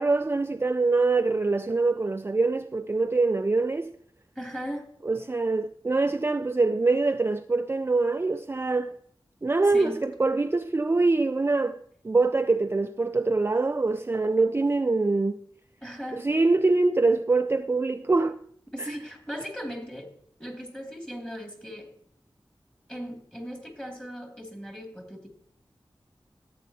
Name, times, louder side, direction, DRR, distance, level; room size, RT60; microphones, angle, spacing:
voice 1, 0.0-3.9 5.1-9.0 9.4-15.4 16.1-18.4 18.8-18.9, right 3 dB, 25° right, 0.3 m, -24 dB
voice 2, 4.4-4.9 9.6-10.0 15.8-16.3 18.7-20.1 20.4-21.9 22.9-25.3, equal, 10° left, 2.2 m, -37 dB
14.0 x 8.5 x 2.8 m
wide cardioid pair, 80°, 9 cm